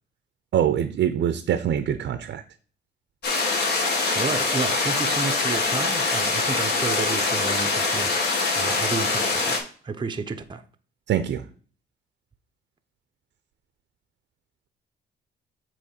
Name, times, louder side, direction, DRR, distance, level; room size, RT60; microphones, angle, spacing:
voice 1, 0.5-2.4 11.1-11.4, right 10 dB, 65° right, 0.7 m, -24 dB
sound 1, 3.2-9.6, left 3 dB, 55° left, 1.9 m, -24 dB
voice 2, 4.1-8.2 8.6-10.6, right 4 dB, 25° right, 0.7 m, -31 dB
7.9 x 3.2 x 4.4 m
cardioid pair, 90°, 20 cm